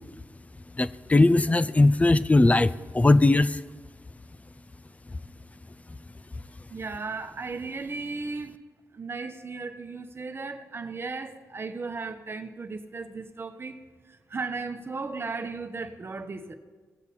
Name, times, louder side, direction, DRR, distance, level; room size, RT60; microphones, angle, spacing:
voice 1, 0.8-3.6, left 2 dB, 20° left, 0.4 m, -20 dB
voice 2, 6.7-8.5 8.9-13.8 14.3-16.5, right 4 dB, 40° right, 1.0 m, -35 dB
17.5 x 7.0 x 4.2 m
cardioid pair, 55°, 6 cm